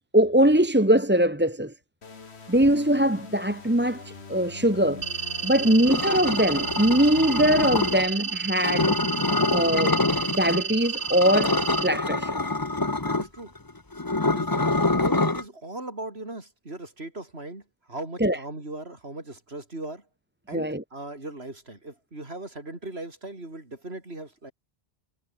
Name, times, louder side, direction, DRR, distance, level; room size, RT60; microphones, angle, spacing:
voice 1, 0.1-1.7 2.5-5.1 5.4-9.0 9.5-10.0 10.3-12.4 18.2-18.4 20.5-20.8, right 1 dB, 10° right, 1.3 m, -22 dB
sound 1, 2.0-7.9, left 4 dB, 65° left, 2.2 m, -43 dB
sound 2, 5.0-11.9, right 6 dB, 45° right, 1.1 m, -31 dB
sound 3, 5.9-8.1 8.6-10.6 10.9-15.4, left 2 dB, 20° left, 1.1 m, -26 dB
voice 2, 13.0-13.6 14.2-14.7 15.0-20.0 20.5-24.5, right 2 dB, 65° right, 5.3 m, -39 dB
omnidirectional pair, 1.2 m